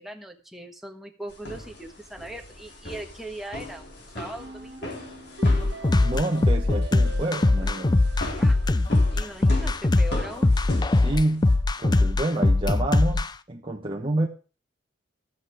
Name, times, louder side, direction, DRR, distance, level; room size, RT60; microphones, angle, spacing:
voice 1, 0.0-4.9 8.4-8.6 9.1-10.6, right 1 dB, ahead, 1.5 m, -40 dB
sound 1, 1.3-11.5, left 1 dB, 60° left, 4.1 m, -39 dB
sound 2, 4.4-9.4, right 4 dB, 75° right, 1.6 m, -43 dB
sound 3, 5.4-13.3, left 2 dB, 25° left, 0.5 m, -21 dB
voice 2, 6.0-7.9 10.9-14.3, right 1 dB, 30° right, 1.1 m, -28 dB
13.0 x 8.2 x 4.8 m
head